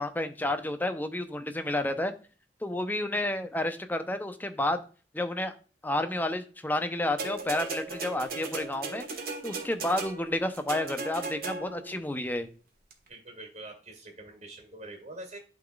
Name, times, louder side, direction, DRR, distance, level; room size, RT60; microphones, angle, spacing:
voice 1, 0.0-2.1 2.6-4.8 5.1-5.5 5.8-9.0 9.4-12.5, left 1 dB, 10° left, 8 dB, 0.6 m, -30 dB
sound 1, 7.2-11.9 12.9-13.0, right 3 dB, 60° right, 1.5 m, -37 dB
voice 2, 13.1-15.4, right 2 dB, 40° right, 2 dB, 2.3 m, -45 dB
11.5 x 3.9 x 2.3 m, 0.37 s
head